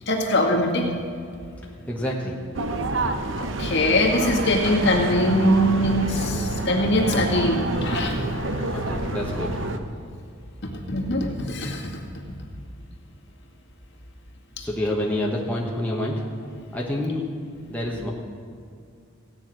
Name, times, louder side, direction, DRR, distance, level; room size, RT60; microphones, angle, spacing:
voice 1, 0.1-0.9 3.4-8.2 10.6-12.0, left 1 dB, 55° left, 0 dB, 2.0 m, -22 dB
voice 2, 1.9-2.4 8.7-9.5 14.6-16.2 16.7-17.2 17.7-18.1, left 1 dB, 5° left, -3 dB, 1.3 m, -27 dB
sound 1, 2.5-9.8, right 2 dB, 60° right, 0.9 m, -28 dB
sound 2, 4.6-9.7, left 1 dB, 80° left, 2.2 m, -35 dB
16.0 x 9.7 x 6.1 m, 2.4 s
head